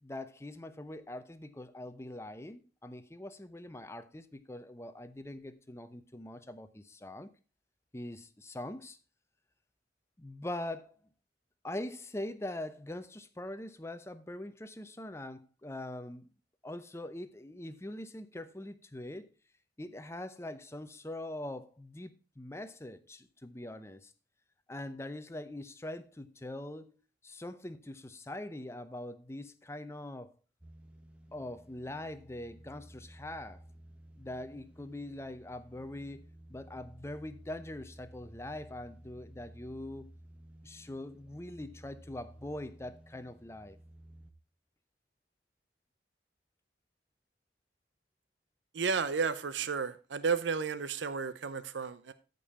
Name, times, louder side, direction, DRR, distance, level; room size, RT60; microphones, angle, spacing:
voice 1, 0.0-7.3 7.9-9.0 10.2-11.0 11.6-16.2 16.6-19.3 19.8-24.1 24.7-27.0 27.2-30.3 31.3-33.6 34.2-36.2 36.5-40.1 40.6-43.8, left 1 dB, 15° left, 0.6 m, -43 dB
sound 1, 30.6-44.3, right 1 dB, 5° right, 1.0 m, -55 dB
voice 2, 48.7-52.1, right 5 dB, 80° right, 0.6 m, -32 dB
13.5 x 5.4 x 4.1 m
head